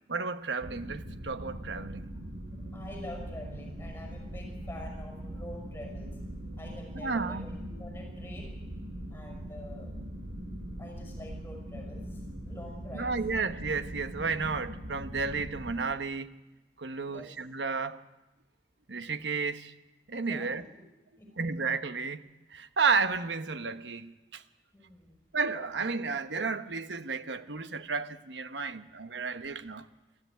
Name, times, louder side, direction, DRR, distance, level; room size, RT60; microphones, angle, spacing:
voice 1, 0.1-2.1 6.9-7.5 12.9-16.3 16.8-18.0 18.9-19.7 20.1-20.6 21.4-22.2 22.5-24.4 25.3-29.9, right 4 dB, 85° right, 1.1 m, -32 dB
sound 1, 0.6-15.7, equal, 60° right, 3.4 m, -41 dB
voice 2, 2.7-6.2 6.5-8.6 9.1-9.9 10.8-13.1 17.1-17.3 20.1-20.8 21.2-21.5 24.7-25.2, left 1 dB, 10° left, 5.6 m, -47 dB
25.5 x 13.5 x 9.4 m
head